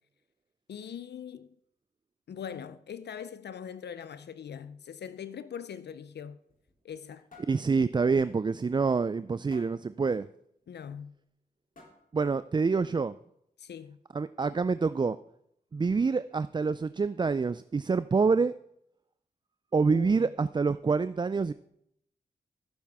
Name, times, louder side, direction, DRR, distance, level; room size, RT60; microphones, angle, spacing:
voice 1, 0.7-1.6 2.3-6.4 6.8-7.3 10.7-11.1 13.6-14.0 19.9-20.3, left 8 dB, 70° left, 0.5 m, -41 dB
sound 1, 6.5-7.0 7.3-7.6 8.0-8.2 8.6-8.7 9.5-9.9 11.0-11.1 11.7-12.2, left 3 dB, 50° left, 3.1 m, -54 dB
voice 2, 7.5-10.3 12.1-13.2 14.1-15.2 15.7-18.5 19.7-21.5, right 4 dB, 25° right, 0.3 m, -26 dB
14.5 x 7.2 x 3.5 m
cardioid pair, 40°, 18 cm